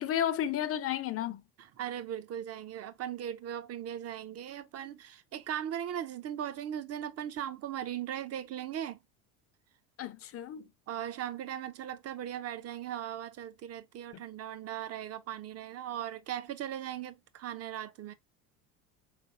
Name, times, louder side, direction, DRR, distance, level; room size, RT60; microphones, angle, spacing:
voice 1, 0.0-1.4 10.0-10.7 14.1-14.2, left 10 dB, 35° left, 0.6 m, -32 dB
voice 2, 1.8-9.0 10.9-18.1, right 10 dB, 40° right, 0.7 m, -38 dB
3.9 x 3.4 x 2.4 m
hypercardioid pair, 75°, 41 cm